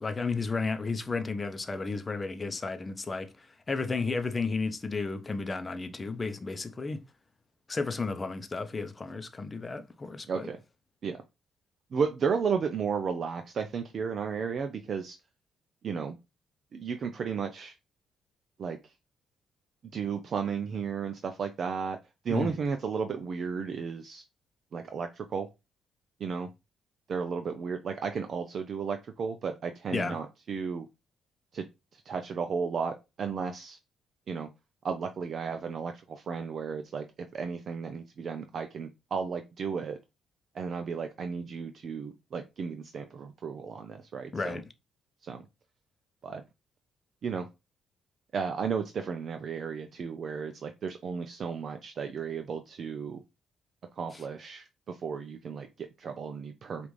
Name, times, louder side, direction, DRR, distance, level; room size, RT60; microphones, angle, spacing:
voice 1, 0.0-7.0 7.7-10.5 22.3-22.6 29.9-30.2 44.3-44.6, left 4 dB, 25° left, 0.6 m, -33 dB
voice 2, 10.3-10.6 11.0-11.2 11.9-15.2 15.8-16.2 16.7-17.7 18.6-18.8 19.9-22.0 22.2-24.2 24.7-25.5 26.2-26.5 27.1-30.9 31.5-31.7 31.9-33.8 34.3-34.5 34.8-37.0 37.3-40.0 40.5-44.6 45.2-45.4 46.2-46.4 47.2-47.5 48.3-53.2 54.0-56.9, right 6 dB, 55° right, 0.5 m, -34 dB
5.1 x 2.5 x 3.1 m
cardioid pair, 90°, 0 cm